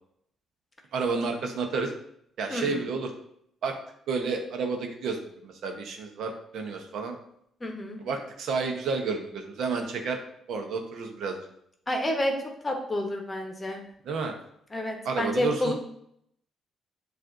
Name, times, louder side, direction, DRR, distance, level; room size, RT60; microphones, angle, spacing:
voice 1, 0.9-1.9 2.4-3.1 3.6-3.7 4.1-7.2 8.0-10.2 10.5-11.4 14.0-14.3 15.0-15.7, right 4 dB, 75° right, 4 dB, 0.7 m, -30 dB
voice 2, 2.5-2.9 7.6-8.0 11.9-12.3 12.6-13.8 14.7-15.7, left 1 dB, 25° left, 2 dB, 0.9 m, -29 dB
7.4 x 2.5 x 2.5 m, 0.71 s
cardioid pair, 90°, 0 cm